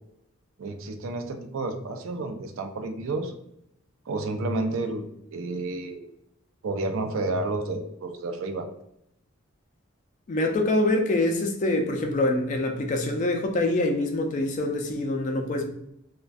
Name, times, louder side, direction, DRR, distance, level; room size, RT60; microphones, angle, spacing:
voice 1, 0.6-3.3 4.1-6.0 6.6-8.7, right 2 dB, 70° right, 6 dB, 0.4 m, -30 dB
voice 2, 10.3-15.6, left 2 dB, 35° left, 4 dB, 0.3 m, -25 dB
2.3 x 2.1 x 2.5 m, 0.78 s
head